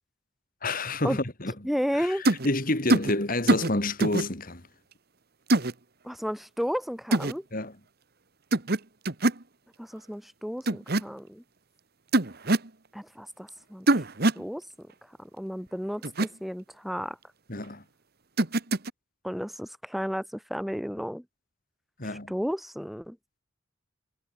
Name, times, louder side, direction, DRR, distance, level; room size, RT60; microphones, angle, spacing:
voice 1, 0.6-1.5 2.0-4.7 7.5-7.7 17.5-17.8 22.0-22.3, left 2 dB, 45° left, 2.9 m, -29 dB
voice 2, 1.6-2.2 6.0-7.4 9.8-11.4 12.9-13.9 14.3-17.2 19.2-21.2 22.0-23.2, equal, ahead, 3.0 m, -33 dB
sound 1, 2.2-2.5 2.9-3.1 3.5-3.7 4.0-4.2 5.5-5.7 7.1-7.3 8.5-8.8 9.0-9.4 10.7-11.0 12.1-12.7 13.9-14.4 16.0-16.3 18.4-18.9, right 2 dB, 50° right, 1.6 m, -23 dB
head